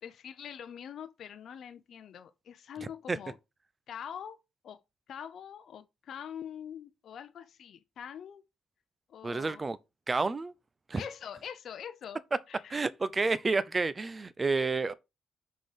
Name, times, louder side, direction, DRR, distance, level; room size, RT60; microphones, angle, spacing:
voice 1, 0.0-3.4 3.9-4.4 4.6-8.4 9.1-9.6 10.9-12.2 12.5-12.8 14.6-14.7, left 8 dB, 65° left, 0.6 m, -44 dB
voice 2, 9.2-9.8 10.1-10.5 10.9-11.0 12.7-14.9, right 3 dB, 30° right, 0.6 m, -29 dB
6.2 x 3.8 x 5.0 m
cardioid pair, 90°, 0 cm